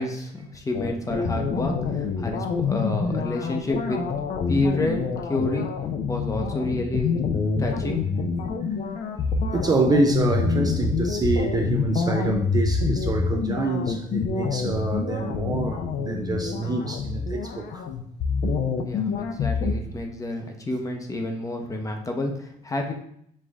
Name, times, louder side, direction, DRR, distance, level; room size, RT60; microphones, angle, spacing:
voice 1, 0.0-4.0 4.5-5.7 6.1-7.2 7.6-8.0 18.8-22.9, left 1 dB, 20° left, 0.7 m, -29 dB
sound 1, 0.7-19.7, left 5 dB, 50° left, 0.5 m, -26 dB
voice 2, 9.5-17.9, right 3 dB, 25° right, 0.4 m, -26 dB
5.2 x 2.6 x 3.4 m
cardioid pair, 110°, 17 cm